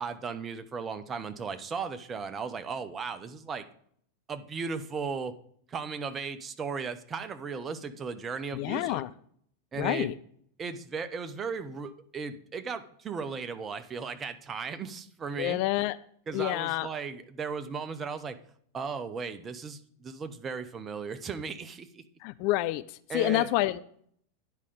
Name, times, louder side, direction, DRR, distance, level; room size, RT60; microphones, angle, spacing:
voice 1, 0.0-3.6 4.3-5.3 5.7-9.0 9.7-10.1 10.6-15.6 16.3-18.4 18.7-22.0 23.1-23.5, right 5 dB, 20° right, 10 dB, 0.7 m, -36 dB
voice 2, 8.5-9.1 9.7-10.1 15.4-16.0 16.3-16.9 22.2-23.8, left 17 dB, 45° left, 15 dB, 0.3 m, -28 dB
9.7 x 4.9 x 5.1 m, 0.63 s
figure-of-eight pair, 90°, 0 cm